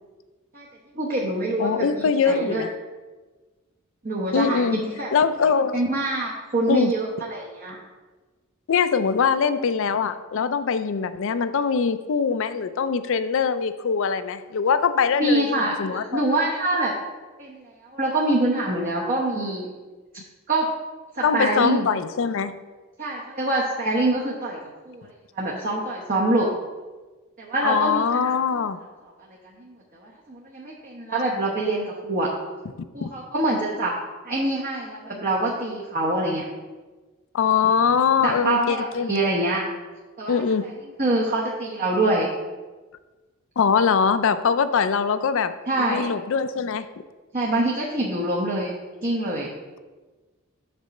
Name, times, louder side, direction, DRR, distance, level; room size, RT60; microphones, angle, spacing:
voice 1, 0.9-2.6 4.0-5.1 5.7-7.8 15.2-16.9 17.4-19.7 20.5-20.7 21.1-21.9 23.0-24.6 24.9-25.1 25.3-26.5 27.4-28.3 29.4-32.3 32.9-33.9 34.2-36.4 38.2-39.6 40.2-40.4 41.0-42.3 45.7-46.1 47.3-48.7 49.0-49.5, right 2 dB, 40° right, -4 dB, 1.0 m, -25 dB
voice 2, 1.6-2.7 4.3-4.8 5.1-5.7 6.7-6.9 8.7-16.2 21.2-22.5 27.6-28.8 33.0-33.1 37.3-39.1 40.3-40.7 43.6-47.0, left 6 dB, 65° left, 12 dB, 0.4 m, -22 dB
6.7 x 4.1 x 6.5 m, 1.3 s
head